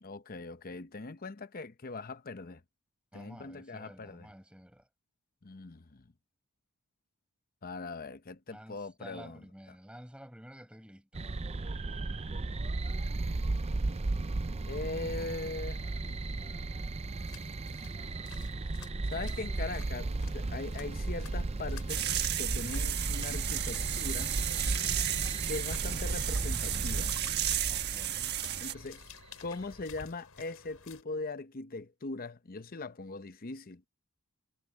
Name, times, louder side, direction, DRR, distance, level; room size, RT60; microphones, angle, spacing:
voice 1, 0.0-2.6 3.1-4.3 5.4-6.1 7.6-9.4 14.7-16.8 17.7-17.8 19.1-22.0 22.4-24.3 25.5-27.1 28.6-29.0 29.4-33.8, left 3 dB, 40° left, 0.8 m, -41 dB
voice 2, 3.1-4.9 8.5-11.3 27.7-28.4, equal, 5° right, 7.5 m, -51 dB
sound 1, 11.1-29.1, right 2 dB, 30° right, 0.5 m, -35 dB
sound 2, 17.0-31.0, left 6 dB, 80° left, 6.7 m, -53 dB
sound 3, 21.9-28.7, right 12 dB, 50° right, 1.3 m, -33 dB
head